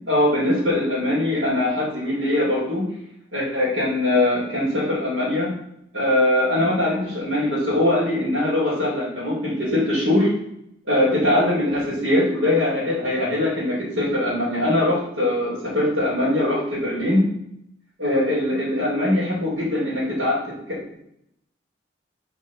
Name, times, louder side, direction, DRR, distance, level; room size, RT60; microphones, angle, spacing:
voice 1, 0.1-2.9 3.3-5.5 5.9-10.3 10.9-17.3 18.0-20.4 20.7-21.0, left 1 dB, 75° right, -9 dB, 3.5 m, -22 dB
6.6 x 4.8 x 6.2 m, 0.77 s
head